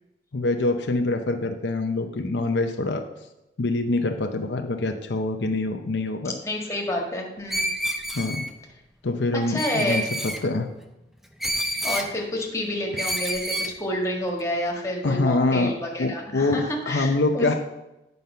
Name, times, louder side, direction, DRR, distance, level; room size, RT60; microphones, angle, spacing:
voice 1, 0.3-3.0 3.6-6.3 8.1-8.4 9.0-10.7 15.0-15.7 16.0-17.5, left 2 dB, 75° left, 5 dB, 0.7 m, -25 dB
voice 2, 6.4-7.7 9.3-10.0 11.8-17.6, left 1 dB, 15° left, -1 dB, 1.6 m, -29 dB
Screech, 7.5-8.5 9.6-10.4 11.4-12.1 13.0-13.7, equal, ahead, 0.5 m, -28 dB
9.4 x 5.3 x 5.6 m, 0.96 s
head